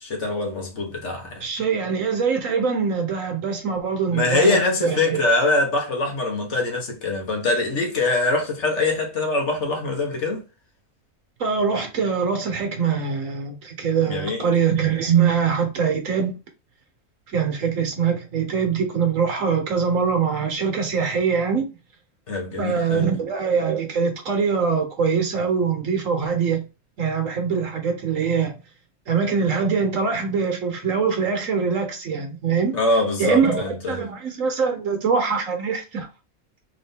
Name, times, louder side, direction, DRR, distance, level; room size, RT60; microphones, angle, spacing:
voice 1, 0.0-1.4 4.1-10.4 14.1-14.5 22.3-23.1 32.7-34.1, left 2 dB, 60° left, 1.4 m, -23 dB
voice 2, 1.4-5.2 11.4-16.3 17.3-21.7 22.6-26.6 27.0-28.5 29.1-32.8 33.2-36.1, right 6 dB, 70° right, 1.4 m, -23 dB
3.7 x 2.7 x 3.6 m
omnidirectional pair, 1.4 m